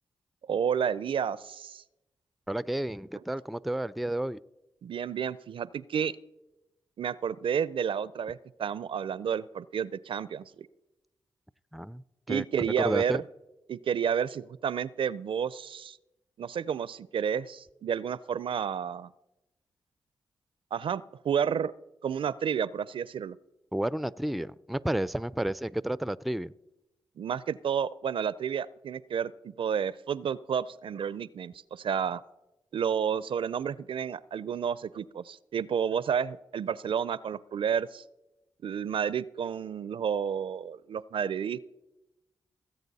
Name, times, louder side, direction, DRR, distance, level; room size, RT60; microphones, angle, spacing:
voice 1, 0.5-1.8 4.8-6.2 7.0-10.7 12.3-13.2 13.7-16.0 16.4-19.1 20.7-21.7 22.0-23.4 27.2-29.3 29.6-32.2 32.7-38.0 38.6-41.6, right 7 dB, 65° right, 19 dB, 0.4 m, -31 dB
voice 2, 2.5-4.4 11.7-13.2 23.7-26.5, right 1 dB, ahead, 19 dB, 0.4 m, -31 dB
18.0 x 8.0 x 4.1 m, 0.95 s
supercardioid pair, 40°, 10 cm